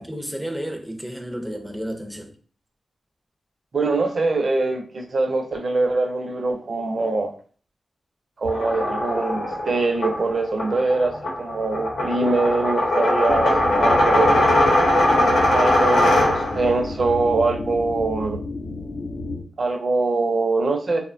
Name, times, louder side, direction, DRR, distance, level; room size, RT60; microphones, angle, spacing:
voice 1, 0.1-2.3, equal, 5° right, 0.4 m, -31 dB
voice 2, 3.7-7.3 8.4-14.4 15.5-18.4 19.6-21.0, right 3 dB, 55° right, 0.5 m, -23 dB
sound 1, 8.4-16.7, left 1 dB, 90° left, 0.7 m, -20 dB
sound 2, 13.3-19.4, left 3 dB, 60° left, 0.5 m, -31 dB
2.9 x 2.1 x 2.5 m
wide cardioid pair, 105°, 0 cm